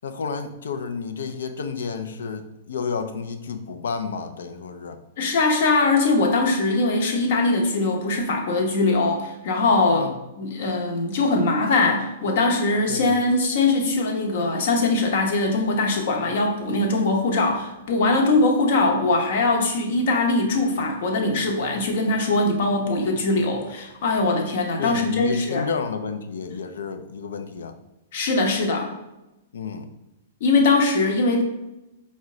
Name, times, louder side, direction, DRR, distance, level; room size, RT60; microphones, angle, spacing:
voice 1, 0.0-5.0 9.9-10.2 12.9-13.2 24.8-27.8 29.5-29.9, left 5 dB, 85° left, 8 dB, 0.4 m, -31 dB
voice 2, 5.2-25.6 28.1-28.9 30.4-31.4, left 3 dB, 60° left, 2 dB, 0.8 m, -21 dB
4.5 x 2.1 x 3.7 m, 0.94 s
hypercardioid pair, 140°, 0 cm